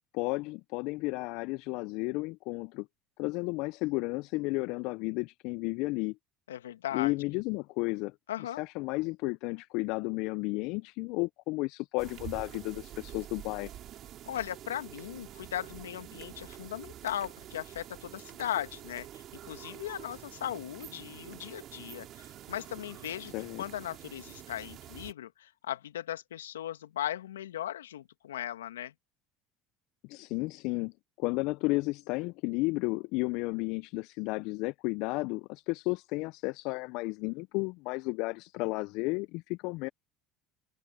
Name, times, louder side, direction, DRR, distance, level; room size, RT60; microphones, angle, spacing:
voice 1, 0.1-2.9 3.2-6.2 6.9-13.7 23.3-23.6 30.0-39.9, left 24 dB, 65° left, 0.6 m, -33 dB
voice 2, 6.5-7.1 8.3-8.6 14.3-23.3 23.6-28.9, left 11 dB, 85° left, 2.0 m, -38 dB
sound 1, 12.0-25.1, right 12 dB, 50° right, 3.8 m, -47 dB
hypercardioid pair, 70°, 0 cm